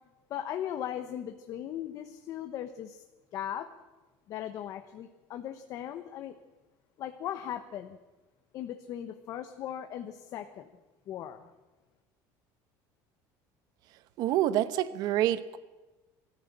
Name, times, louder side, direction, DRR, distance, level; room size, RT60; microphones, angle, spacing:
voice 1, 0.3-3.0 3.3-3.7 4.3-6.4 7.0-8.0 8.5-10.7 11.1-11.5, left 10 dB, 45° left, 7 dB, 1.1 m, -38 dB
voice 2, 14.2-15.6, right 13 dB, 50° right, 14 dB, 1.1 m, -27 dB
21.5 x 14.5 x 8.6 m, 1.2 s
cardioid pair, 165°, 8 cm